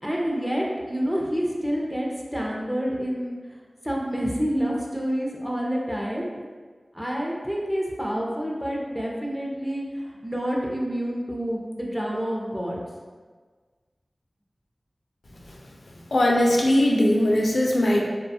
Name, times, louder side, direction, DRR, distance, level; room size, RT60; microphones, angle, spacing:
voice 1, 0.0-3.6 3.8-6.4 6.9-12.8, equal, 5° right, -3 dB, 0.5 m, -28 dB
voice 2, 16.1-18.0, left 1 dB, 75° left, -1 dB, 0.3 m, -20 dB
2.3 x 2.3 x 2.6 m, 1.5 s
wide cardioid pair, 45°, 0 cm